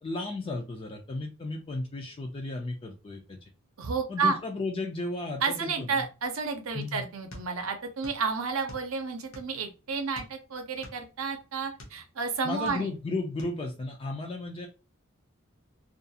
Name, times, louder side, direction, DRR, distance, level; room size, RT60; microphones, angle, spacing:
voice 1, 0.0-3.4 4.1-6.0 6.7-7.0 12.4-14.7, left 2 dB, 25° left, 2 dB, 0.3 m, -34 dB
voice 2, 3.8-4.4 5.4-12.9, right 5 dB, 80° right, 5 dB, 0.6 m, -31 dB
sound 1, 7.3-8.3 8.5-9.7 10.1-12.0 12.5-13.1 13.4-13.6, left 1 dB, 85° left, 0.8 m, -47 dB
2.4 x 2.3 x 2.7 m, 0.31 s
head